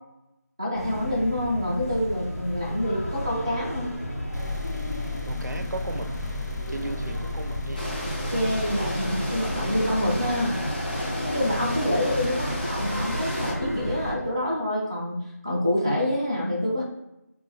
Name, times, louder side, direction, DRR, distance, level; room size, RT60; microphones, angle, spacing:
voice 1, 0.6-3.9 8.3-10.5 11.2-16.8, left 1 dB, 20° right, -4 dB, 0.4 m, -27 dB
sound 1, 0.7-14.1, equal, 55° left, 0.9 m, -33 dB
sound 2, 4.3-11.9, left 7 dB, 90° left, 0.6 m, -39 dB
voice 2, 5.3-6.2 6.7-7.9, right 2 dB, 85° right, 5 dB, 0.4 m, -35 dB
sound 3, 7.7-13.5, equal, 35° left, 0.6 m, -32 dB
2.1 x 2.1 x 3.1 m, 0.89 s
figure-of-eight pair, 170°, 9 cm